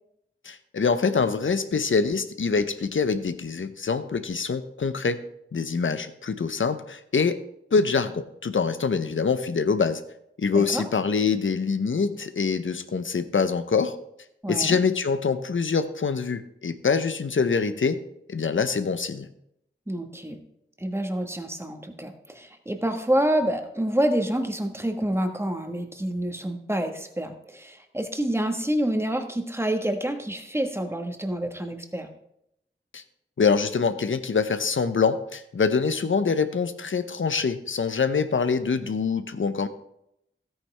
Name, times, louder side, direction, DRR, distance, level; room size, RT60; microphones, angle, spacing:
voice 1, 0.4-5.2 5.5-7.4 7.7-10.0 10.4-14.0 14.5-18.0 18.3-19.3 32.9-33.0 33.4-39.7, left 5 dB, 80° left, 11 dB, 0.7 m, -25 dB
voice 2, 10.5-10.8 14.4-14.8 19.9-20.4 20.8-32.1, right 1 dB, 10° right, 5 dB, 1.4 m, -27 dB
13.0 x 9.1 x 3.3 m, 0.78 s
wide cardioid pair, 50°, 20 cm